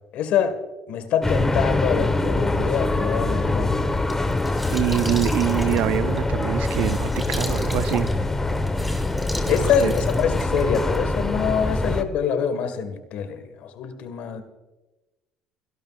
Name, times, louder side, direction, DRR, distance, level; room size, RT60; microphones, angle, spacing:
voice 1, 0.1-0.6 0.9-3.9 9.4-14.4, left 7 dB, 65° left, 9 dB, 1.6 m, -25 dB
sound 1, 1.2-12.0, left 2 dB, 15° left, 1.2 m, -24 dB
sound 2, 3.8-11.1, equal, ahead, 2.6 m, -38 dB
voice 2, 4.7-8.1 9.5-9.9, right 13 dB, 70° right, 15 dB, 0.4 m, -25 dB
29.0 x 12.0 x 2.5 m, 1.1 s
supercardioid pair, 70°, 2 cm